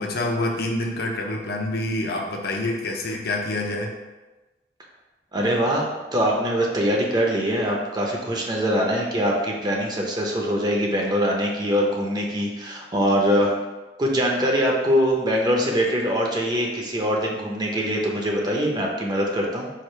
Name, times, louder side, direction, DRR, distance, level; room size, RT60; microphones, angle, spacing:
voice 1, 0.0-3.9, left 2 dB, 60° left, 1 dB, 0.6 m, -27 dB
voice 2, 5.3-13.5 14.0-19.7, equal, 25° right, -1 dB, 0.6 m, -23 dB
4.8 x 2.4 x 4.4 m, 1.2 s
head